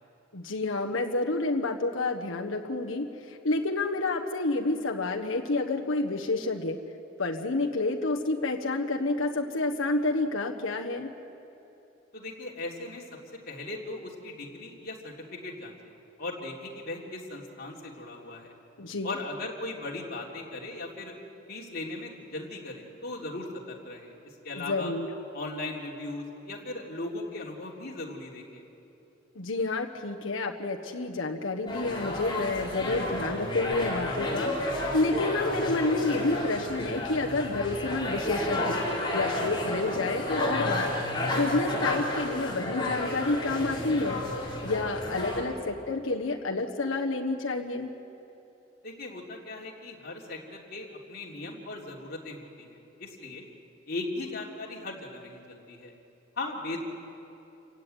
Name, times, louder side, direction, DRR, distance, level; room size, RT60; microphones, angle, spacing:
voice 1, 0.3-6.8 7.2-11.1 18.8-19.2 24.5-25.1 29.3-38.8 39.1-40.9 41.3-44.2 44.6-47.9, left 2 dB, 85° left, 1 dB, 1.3 m, -29 dB
voice 2, 12.1-13.0 13.5-15.9 16.2-18.5 19.0-21.1 21.5-24.9 25.3-28.6 48.8-53.4 53.9-55.9 56.3-56.8, left 2 dB, 50° left, -2 dB, 3.4 m, -38 dB
sound 1, 31.7-45.4, left 1 dB, 25° left, 4.7 m, -31 dB
28.5 x 16.0 x 9.4 m, 2.9 s
head